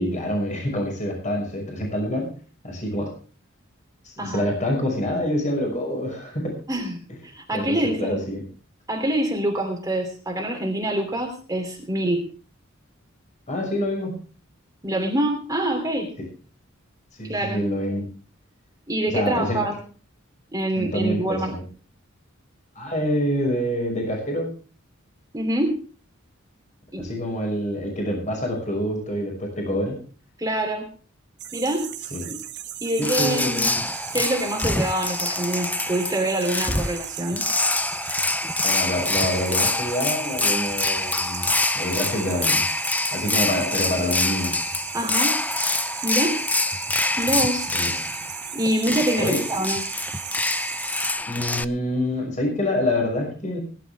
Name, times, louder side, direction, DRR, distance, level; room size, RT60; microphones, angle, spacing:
voice 1, 0.0-2.3 2.6-3.1 4.0-6.5 7.5-8.4 13.5-14.1 17.2-18.0 19.1-19.6 20.8-21.6 22.8-24.5 27.0-30.0 32.1-32.3 33.0-33.8 38.6-41.5 41.7-42.6 43.1-44.7 47.7-47.9 49.2-49.4 51.3-53.6, left 1 dB, 35° left, 1 dB, 5.8 m, -26 dB
voice 2, 7.2-8.2 8.9-12.3 14.8-16.1 17.2-17.6 18.9-19.8 20.5-21.5 25.3-25.8 26.9-27.1 30.4-30.9 31.5-31.9 32.3-32.4 32.8-33.7 34.1-37.4 44.9-45.4 46.0-46.4 47.2-47.7 48.5-49.8, right 1 dB, 15° right, 1 dB, 3.0 m, -25 dB
sound 1, 31.4-51.1, right 11 dB, 55° right, 1.8 m, -36 dB
sound 2, 33.0-51.6, left 2 dB, 10° left, 0.6 m, -25 dB
21.0 x 11.0 x 3.5 m, 0.39 s
head